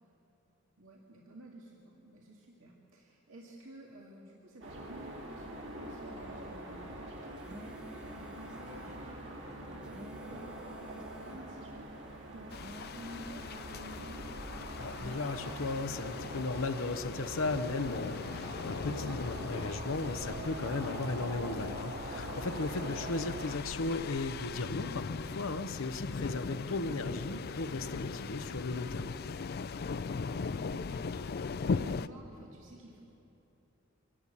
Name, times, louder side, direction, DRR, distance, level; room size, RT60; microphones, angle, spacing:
voice 1, 0.8-11.9 12.2-14.4 30.0-33.0, right 1 dB, 80° right, -2 dB, 2.1 m, -52 dB
sound 1, 4.6-23.6, right 1 dB, 60° right, 2.7 m, -44 dB
sound 2, 7.2-9.0 9.6-11.4 12.3-14.1 14.7-16.5, left 1 dB, 5° right, 0.7 m, -52 dB
sound 3, 12.5-32.1, left 5 dB, 50° left, 0.4 m, -39 dB
voice 2, 14.8-29.1, left 3 dB, 75° left, 7 dB, 0.8 m, -36 dB
24.0 x 12.5 x 8.7 m, 3.0 s
head